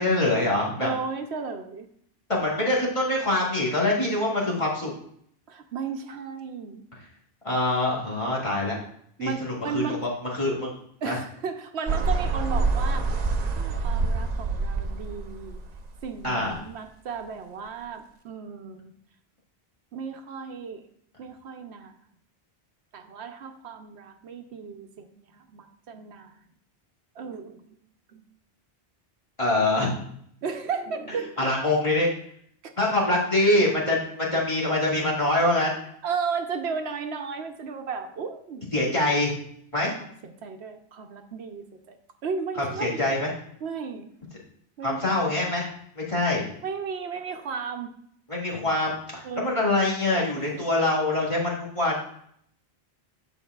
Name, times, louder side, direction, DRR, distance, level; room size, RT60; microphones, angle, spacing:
voice 1, 0.0-0.9 2.3-4.9 7.4-8.8 9.2-10.7 11.0-11.2 16.2-16.6 29.4-30.0 31.4-32.1 32.8-35.7 38.7-39.3 39.7-39.9 42.6-43.3 44.8-45.7 46.0-46.4 48.3-52.0, left 2 dB, 30° left, -5 dB, 2.0 m, -24 dB
voice 2, 0.8-1.9 5.5-6.8 9.2-10.0 11.0-13.1 13.4-15.6 16.0-18.9 19.9-20.8 21.2-21.9 22.9-26.3 27.2-27.8 28.1-28.2 30.4-31.5 36.0-38.9 40.2-42.0 42.2-43.0 43.6-44.1 44.8-45.1 46.6-47.9 49.2-49.6 50.4-50.5, right 5 dB, 85° right, 6 dB, 0.9 m, -34 dB
sound 1, 11.9-16.2, right 3 dB, 50° right, 0.6 m, -26 dB
13.5 x 4.5 x 2.3 m, 0.66 s
omnidirectional pair, 1.1 m